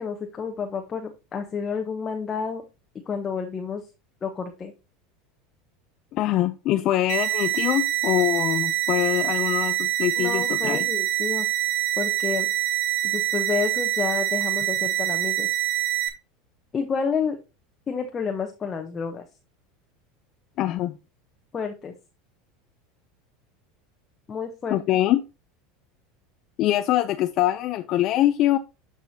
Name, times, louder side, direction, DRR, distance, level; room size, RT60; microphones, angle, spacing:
voice 1, 0.0-2.6 3.1-3.9 4.2-4.7 10.2-11.5 12.0-12.5 13.0-15.6 16.7-17.4 17.9-19.2 21.5-21.9 24.3-24.8, left 6 dB, 25° left, 0.9 m, -30 dB
voice 2, 6.1-10.9 20.6-21.0 24.7-25.2 26.6-28.6, left 14 dB, 45° left, 0.4 m, -23 dB
sound 1, 7.1-16.1, right 13 dB, 80° right, 1.0 m, -25 dB
12.0 x 4.9 x 2.7 m
supercardioid pair, 130°, 0 cm